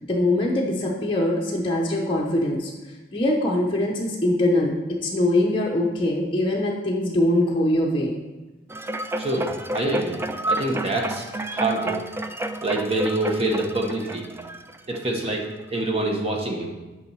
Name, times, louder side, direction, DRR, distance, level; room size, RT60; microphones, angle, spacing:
voice 1, 0.0-2.7 3.1-8.1, left 1 dB, 30° left, -2 dB, 0.8 m, -22 dB
sound 1, 8.7-15.3 15.8-15.9, right 2 dB, 15° right, 0.3 m, -30 dB
voice 2, 9.2-11.2 11.5-12.0 12.6-14.3 14.9-16.8, right 1 dB, 35° right, 0 dB, 1.2 m, -26 dB
6.9 x 5.4 x 4.6 m, 1.1 s
head